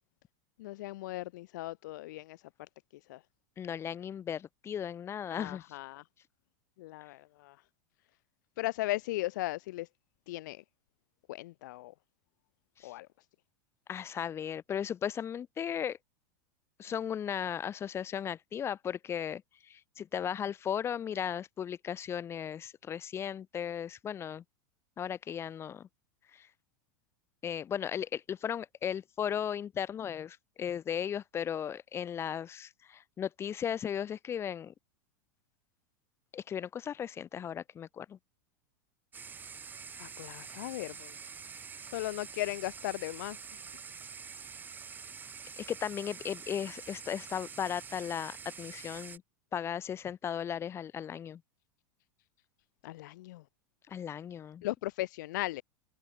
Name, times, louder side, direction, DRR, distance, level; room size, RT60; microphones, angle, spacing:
voice 1, 0.6-2.4 3.1-3.2 5.3-6.0 6.8-7.6 8.6-9.9 10.3-10.6 11.3-11.9 12.8-13.1 40.0-41.1 41.9-43.4 52.8-53.4 54.6-55.6, left 18 dB, 70° left, 0.9 m, -37 dB
voice 2, 3.6-5.6 12.8-12.9 13.9-16.0 16.8-24.4 25.0-25.9 26.3-26.5 27.4-34.7 36.3-38.2 45.6-49.2 49.5-51.4 53.9-54.6, left 8 dB, 25° left, 0.6 m, -36 dB
sound 1, 39.1-49.2, right 6 dB, 20° right, 0.6 m, -46 dB
hypercardioid pair, 110°, 10 cm